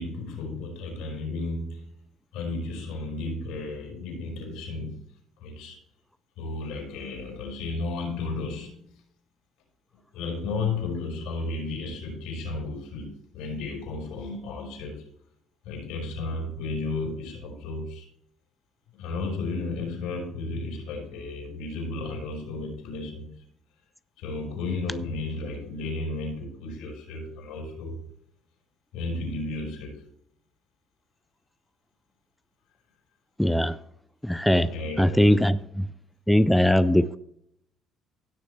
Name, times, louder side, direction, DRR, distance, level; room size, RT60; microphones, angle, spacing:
voice 1, 0.0-2.0 2.3-5.1 5.4-5.8 6.4-9.0 10.1-15.0 15.6-18.1 18.9-23.3 24.2-28.0 28.9-30.0 34.7-35.5, left 3 dB, 80° left, 1 dB, 4.8 m, -33 dB
voice 2, 33.4-33.8 34.2-34.7 35.0-35.9 36.3-37.2, left 1 dB, 5° left, 13 dB, 0.5 m, -20 dB
17.0 x 6.4 x 3.3 m, 0.73 s
supercardioid pair, 70°, 0 cm